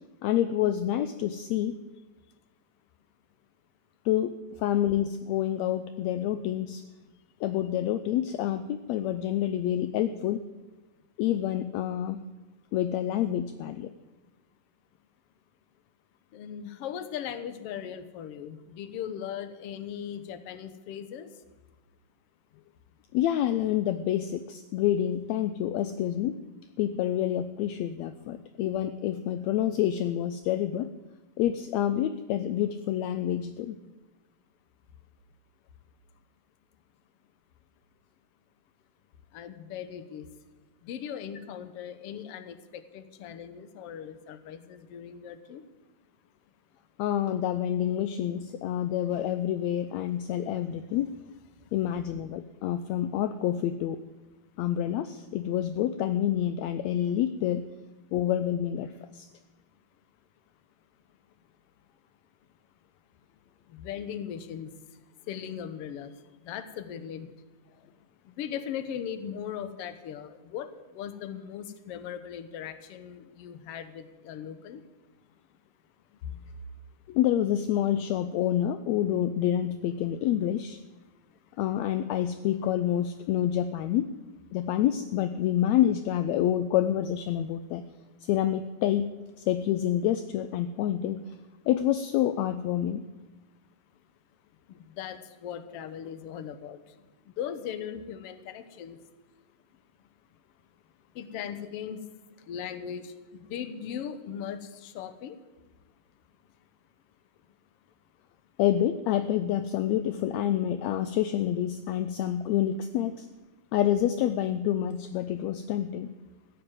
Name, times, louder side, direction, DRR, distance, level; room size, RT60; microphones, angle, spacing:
voice 1, 0.2-1.8 4.0-6.8 7.4-10.4 11.2-12.2 12.7-13.9 23.1-26.4 26.8-30.9 31.4-33.8 47.0-51.1 51.7-54.0 54.6-57.6 58.1-59.3 77.1-80.8 81.6-84.1 84.5-87.8 88.2-89.1 89.4-91.2 91.7-93.0 108.6-113.3 113.7-116.1, left 11 dB, 80° left, 11 dB, 1.6 m, -28 dB
voice 2, 16.3-21.3 39.3-40.3 40.8-45.6 63.7-64.7 65.3-66.1 66.4-67.3 68.3-70.7 70.9-74.8 76.2-76.4 94.7-96.8 97.4-99.0 101.1-102.0 102.5-105.4, left 9 dB, 60° left, 11 dB, 1.6 m, -38 dB
15.5 x 9.4 x 8.9 m, 1.2 s
omnidirectional pair, 3.7 m